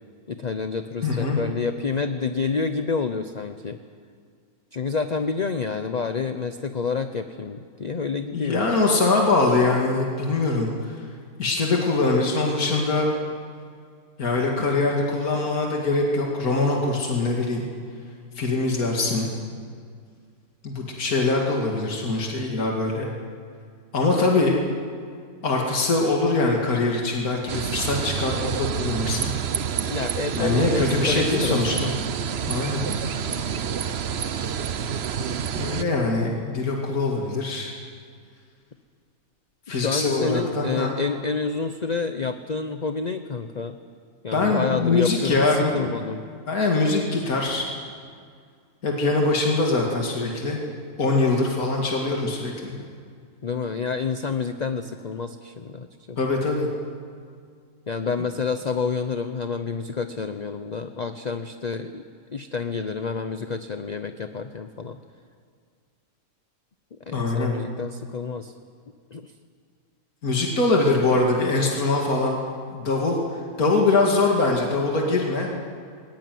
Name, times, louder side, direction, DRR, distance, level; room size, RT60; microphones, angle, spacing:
voice 1, 0.3-3.8 4.7-8.7 29.9-32.0 39.7-43.8 44.2-46.3 53.4-56.2 57.9-62.0 62.3-65.0 67.1-68.5 69.1-69.3, left 5 dB, 35° left, 8 dB, 0.7 m, -29 dB
voice 2, 1.0-1.4 8.3-11.0 11.4-13.1 14.2-17.7 18.4-19.3 20.6-23.1 23.9-24.6 25.4-29.3 30.4-31.9 32.5-32.8 35.6-37.7 39.7-40.9 44.3-45.9 46.5-47.7 48.8-50.6 51.0-52.9 56.2-56.7 67.1-67.5 70.2-72.4 72.7-73.2 73.6-75.5, left 3 dB, 75° left, -1 dB, 2.8 m, -23 dB
sound 1, 27.5-35.8, right 7 dB, 50° right, 1.0 m, -28 dB
20.5 x 19.5 x 9.3 m, 2.1 s
omnidirectional pair, 1.5 m